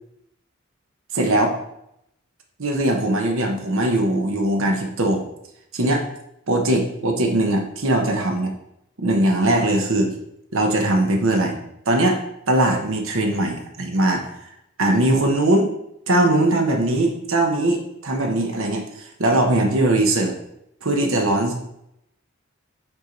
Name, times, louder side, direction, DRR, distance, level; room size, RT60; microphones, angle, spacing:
voice 1, 1.1-1.5 2.6-5.2 5.7-6.0 6.5-8.5 9.0-10.1 10.5-11.6 11.9-12.2 12.5-14.3 14.8-15.7 16.1-20.3 20.8-21.6, right 1 dB, 70° right, 2 dB, 0.9 m, -20 dB
5.8 x 3.9 x 4.4 m, 0.79 s
head